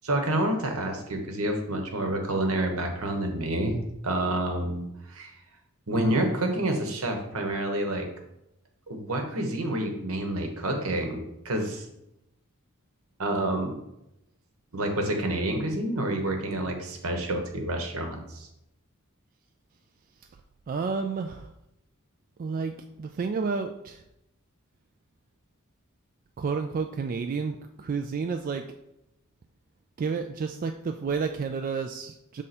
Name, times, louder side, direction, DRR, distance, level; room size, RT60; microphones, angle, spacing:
voice 1, 0.0-3.8 4.0-5.3 5.9-8.1 8.9-11.8 13.2-13.8 14.7-18.5, right 1 dB, 75° right, 4 dB, 1.1 m, -28 dB
voice 2, 20.7-21.5 22.4-24.0 26.4-28.6 30.0-32.4, right 5 dB, 40° right, 5 dB, 0.3 m, -30 dB
6.6 x 3.6 x 4.2 m, 0.86 s
head